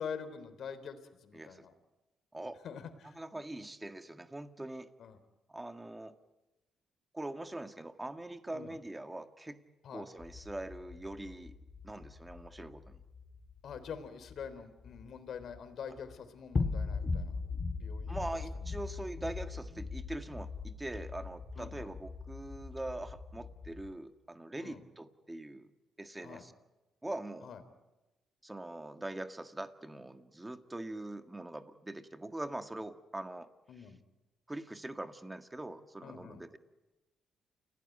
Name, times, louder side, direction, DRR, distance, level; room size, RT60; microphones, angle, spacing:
voice 1, 0.0-1.7 2.6-3.2 5.0-5.2 8.5-8.8 9.8-10.1 13.6-17.4 17.8-18.7 21.5-21.9 24.6-24.8 26.2-26.5 27.4-27.6 33.7-34.0 36.0-36.5, left 7 dB, 65° left, 11 dB, 3.5 m, -45 dB
voice 2, 1.3-1.7 2.3-2.6 3.0-4.9 5.5-6.2 7.1-9.6 9.9-11.6 11.8-13.0 18.1-25.7 26.0-26.5 27.0-27.5 28.4-33.5 33.8-33.9 34.5-36.6, right 1 dB, 15° right, 8 dB, 1.8 m, -43 dB
sound 1, 10.2-15.6 16.0-16.2 16.5-23.9, left 4 dB, 35° left, 2.8 m, -40 dB
29.5 x 17.0 x 9.3 m, 1.1 s
cardioid pair, 90°, 0 cm